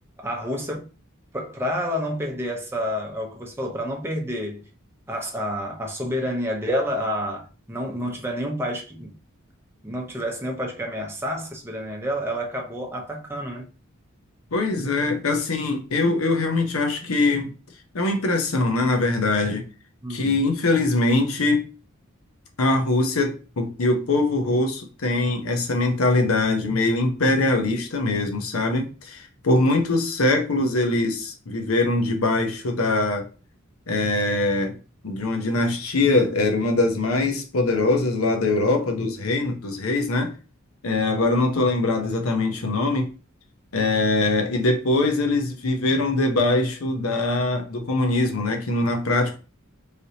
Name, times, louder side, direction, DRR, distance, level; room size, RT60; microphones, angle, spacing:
voice 1, 0.2-0.8 1.3-4.6 5.1-9.2 9.8-13.6 20.0-20.4, equal, 10° right, 0.7 m, -29 dB
voice 2, 14.5-17.5 17.9-19.6 20.1-21.6 22.6-33.3 33.9-34.7 35.0-40.3 40.8-43.1 43.7-49.4, left 2 dB, 85° left, 0.7 m, -22 dB
3.3 x 2.8 x 2.8 m
head